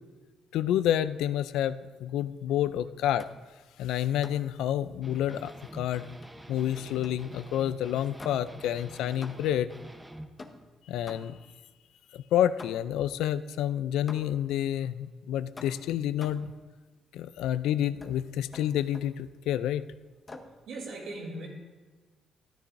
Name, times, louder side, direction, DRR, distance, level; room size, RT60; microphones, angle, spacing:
voice 1, 0.5-3.3 3.8-6.1 6.5-9.7 10.9-11.4 12.1-16.5 17.1-19.8, left 11 dB, 90° left, 14 dB, 0.3 m, -29 dB
sound 1, 3.2-3.5 4.2-4.6 6.2-7.3 8.2-8.7 9.2-9.7 10.4-11.5 12.6-13.1 14.1-14.5 15.6-16.6 18.0-18.2 18.5-19.2 20.3-20.6, left 3 dB, 30° left, 0.8 m, -48 dB
sound 2, 5.0-10.3, right 1 dB, 10° right, 0.8 m, -46 dB
voice 2, 20.7-21.5, right 2 dB, 75° right, -1 dB, 2.9 m, -38 dB
14.0 x 10.0 x 2.6 m, 1.3 s
cardioid pair, 90°, 0 cm